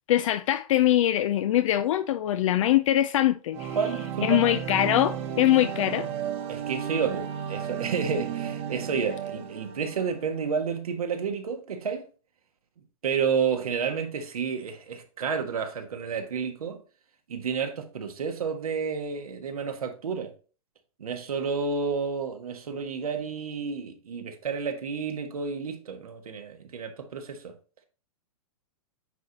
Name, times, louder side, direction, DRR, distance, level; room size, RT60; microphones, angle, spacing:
voice 1, 0.1-3.8 4.2-6.1, left 13 dB, 60° left, 0.4 m, -23 dB
sound 1, 3.5-10.4, right 8 dB, 30° right, 1.1 m, -34 dB
voice 2, 3.7-4.5 6.5-12.0 13.0-16.8 17.3-20.3 21.0-27.5, right 6 dB, 80° right, 1.5 m, -30 dB
9.1 x 3.8 x 2.8 m
hypercardioid pair, 125°, 18 cm